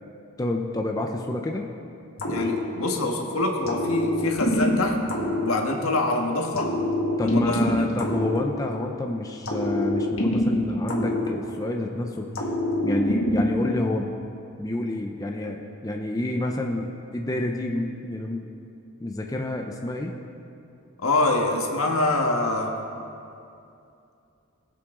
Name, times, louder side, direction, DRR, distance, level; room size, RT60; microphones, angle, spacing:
voice 1, 0.4-1.7 2.3-2.5 7.2-12.3 12.8-14.1 14.6-18.5 19.0-20.1, left 1 dB, 15° left, 2 dB, 0.5 m, -28 dB
sound 1, 2.2-3.2 3.7-6.1 6.6-9.0 9.5-11.9 12.3-13.8, left 1 dB, 65° left, 1.7 m, -26 dB
voice 2, 2.3-5.0 5.4-6.7 7.2-7.9 21.0-22.7, left 2 dB, 80° left, 2 dB, 1.4 m, -25 dB
20.5 x 7.7 x 3.8 m, 2.6 s
head